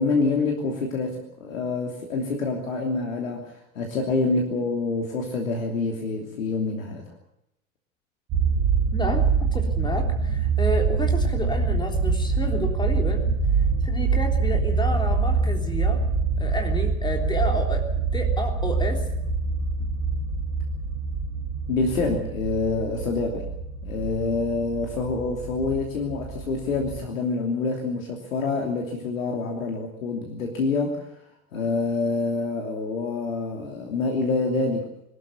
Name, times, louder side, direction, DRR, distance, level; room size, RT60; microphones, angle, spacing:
voice 1, 0.0-7.1 21.7-23.5 23.8-31.1 31.5-34.9, left 3 dB, 70° left, 1 dB, 3.1 m, -26 dB
sound 1, 8.3-27.0, right 5 dB, 40° right, 6.1 m, -25 dB
voice 2, 8.9-16.0 16.4-19.1, left 1 dB, 10° left, 2 dB, 3.5 m, -30 dB
22.5 x 13.5 x 9.7 m, 0.82 s
figure-of-eight pair, 75°, 41 cm